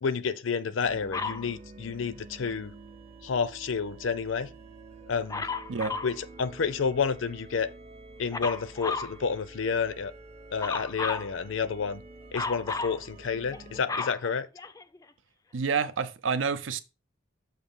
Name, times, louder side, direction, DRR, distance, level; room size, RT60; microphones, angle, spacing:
voice 1, 0.0-2.7 3.2-4.5 5.1-5.5 6.0-7.7 8.2-10.1 10.5-12.0 12.3-14.5, left 5 dB, 80° left, 0.5 m, -30 dB
sound 1, 0.8-13.8, right 3 dB, 30° right, 0.7 m, -48 dB
Dog, 1.1-1.5 5.3-6.2 8.3-9.1 10.6-11.3 12.3-13.0 13.5-15.0 15.8-15.9, left 4 dB, 20° left, 0.3 m, -33 dB
voice 2, 15.5-16.8, right 5 dB, 75° right, 0.6 m, -28 dB
6.6 x 2.6 x 5.4 m
head